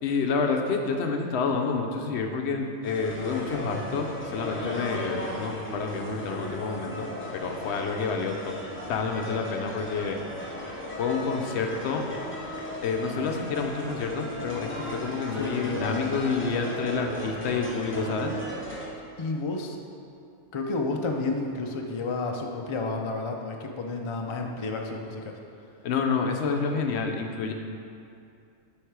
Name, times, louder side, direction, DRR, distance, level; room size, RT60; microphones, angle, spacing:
voice 1, 0.0-7.1 7.3-8.5 8.9-10.2 11.0-12.0 12.8-18.3 25.8-27.5, left 5 dB, 70° left, 3 dB, 0.8 m, -28 dB
sound 1, 2.8-18.9, left 1 dB, 10° left, 0.8 m, -36 dB
voice 2, 19.2-19.8 20.5-25.3, left 3 dB, 50° left, 2 dB, 0.3 m, -31 dB
8.0 x 3.6 x 4.6 m, 2.5 s
omnidirectional pair, 1.2 m